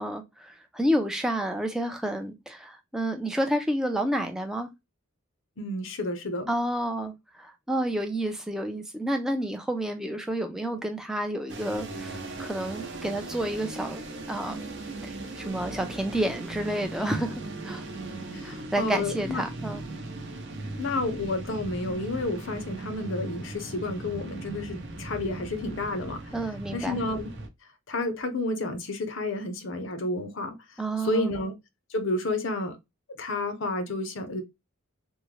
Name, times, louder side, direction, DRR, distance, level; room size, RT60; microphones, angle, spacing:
voice 1, 0.0-4.7 6.5-14.0 14.3-14.7 15.0-17.3 17.6-17.8 18.4-19.8 26.3-27.0 30.8-31.3, right 1 dB, ahead, 0.4 m, -30 dB
voice 2, 5.6-6.5 18.3-19.4 20.8-26.2 26.7-27.3 27.9-31.5 31.9-32.8 33.2-34.4, left 2 dB, 60° left, 0.6 m, -31 dB
sound 1, 11.5-27.5, right 2 dB, 55° right, 0.7 m, -38 dB
3.6 x 2.1 x 3.0 m
head